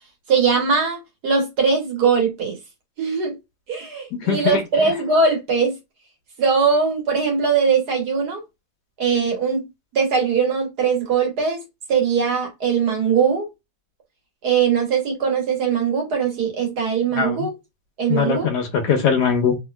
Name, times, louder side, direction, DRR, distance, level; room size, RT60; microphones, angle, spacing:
voice 1, 0.3-2.6 3.0-3.4 3.7-5.8 6.4-8.4 9.0-9.7 9.9-11.6 11.9-13.5 14.4-17.6 18.0-18.5, right 5 dB, 60° right, 1.5 m, -20 dB
voice 2, 4.2-4.6 17.2-17.5 18.1-19.6, left 6 dB, 70° left, 1.2 m, -21 dB
3.2 x 2.8 x 2.3 m
omnidirectional pair, 2.0 m